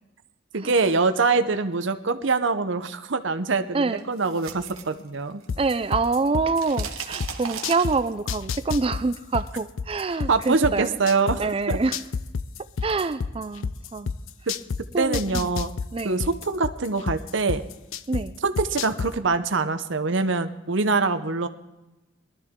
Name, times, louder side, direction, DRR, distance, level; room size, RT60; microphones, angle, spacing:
voice 1, 0.5-5.4 10.3-11.4 11.7-11.8 14.5-14.6 15.0-15.7 16.0-17.6 18.4-21.5, right 4 dB, 65° right, 10 dB, 0.8 m, -24 dB
voice 2, 3.7-4.1 5.6-10.9 11.4-12.0 12.8-14.1 14.9-15.5 15.9-16.2 18.1-18.3, right 4 dB, 25° right, 13 dB, 0.4 m, -26 dB
sound 1, 4.0-5.7 5.9-8.4, right 7 dB, 90° right, 1.2 m, -37 dB
sound 2, 5.5-7.9 8.3-11.4 11.7-14.8 15.1-18.2 18.6-19.1, left 5 dB, 75° left, 0.5 m, -28 dB
19.5 x 12.5 x 3.7 m, 1.0 s
head